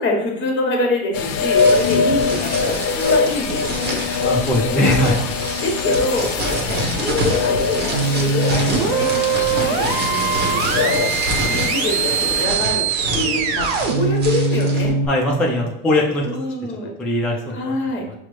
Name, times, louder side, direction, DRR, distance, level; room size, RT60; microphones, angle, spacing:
voice 1, 0.0-4.3 5.1-5.2 5.6-9.1 9.5-11.1 11.5-15.0 16.2-16.9 17.5-18.0, left 2 dB, 30° left, 0 dB, 1.1 m, -25 dB
sound 1, 1.1-12.5, left 5 dB, 75° left, 0.5 m, -23 dB
sound 2, 1.5-14.9, right 1 dB, 25° right, 0.9 m, -28 dB
voice 2, 4.2-5.2 15.1-16.3 16.7-17.7 18.1-18.2, left 1 dB, 5° left, -2 dB, 0.3 m, -20 dB
sound 3, 7.9-15.1, right 6 dB, 55° right, 0.6 m, -22 dB
5.7 x 2.0 x 3.1 m, 0.85 s
supercardioid pair, 120°, 37 cm